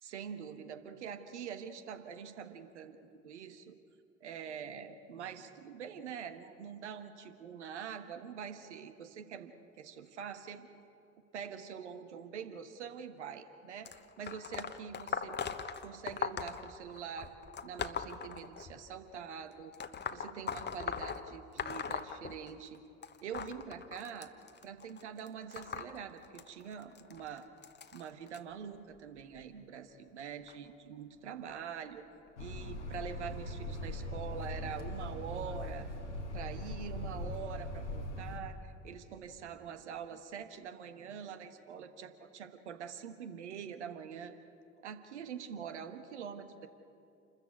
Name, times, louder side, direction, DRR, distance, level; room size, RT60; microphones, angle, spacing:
voice 1, 0.0-3.8 4.2-9.5 9.8-10.7 11.3-13.9 14.2-15.4 15.8-17.3 17.6-19.7 20.1-22.8 23.2-24.3 24.6-27.5 27.9-32.0 32.4-35.9 36.3-44.3 44.8-46.7, right 7 dB, 75° right, 9 dB, 1.4 m, -45 dB
sound 1, 13.8-19.0 19.7-22.8 23.0-28.4 29.2-29.4 30.5-30.6 31.5-31.6 32.3-32.4, left 6 dB, 30° left, 1.2 m, -40 dB
sound 2, 32.4-38.4, left 1 dB, 80° left, 2.0 m, -40 dB
28.5 x 14.0 x 8.4 m, 2.7 s
figure-of-eight pair, 50°, 35 cm